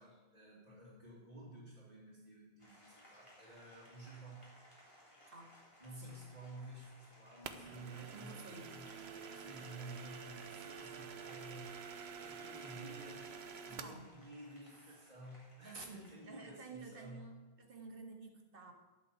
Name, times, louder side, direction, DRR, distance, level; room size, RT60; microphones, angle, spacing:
voice 1, 0.0-4.4 5.8-8.9 9.3-11.7 12.2-13.3 13.6-17.2, right 1 dB, 40° right, -9 dB, 3.0 m, -52 dB
Applause, 2.6-16.6, equal, 30° left, 3.5 m, -63 dB
voice 2, 5.3-5.6 6.0-6.2 8.1-8.8 13.7-14.1 15.6-18.7, right 3 dB, 60° right, 2 dB, 1.9 m, -52 dB
sound 1, 7.4-14.0, right 6 dB, 85° right, 1.1 m, -49 dB
11.5 x 6.1 x 8.5 m, 1.2 s
omnidirectional pair, 1.0 m